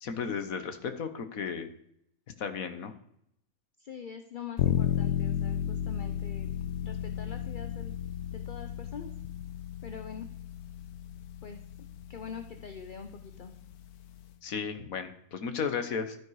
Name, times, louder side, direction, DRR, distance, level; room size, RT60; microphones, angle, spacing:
voice 1, 0.0-1.7 2.4-2.9 14.4-16.2, left 6 dB, 70° left, 9 dB, 1.6 m, -34 dB
voice 2, 3.8-6.5 6.8-7.9 8.3-9.1 9.8-10.3 11.4-11.6 12.1-13.5, left 6 dB, 45° left, 8 dB, 0.8 m, -43 dB
sound 1, 4.6-14.3, left 10 dB, 85° left, 1.2 m, -34 dB
13.0 x 9.8 x 4.8 m, 0.73 s
omnidirectional pair, 1.6 m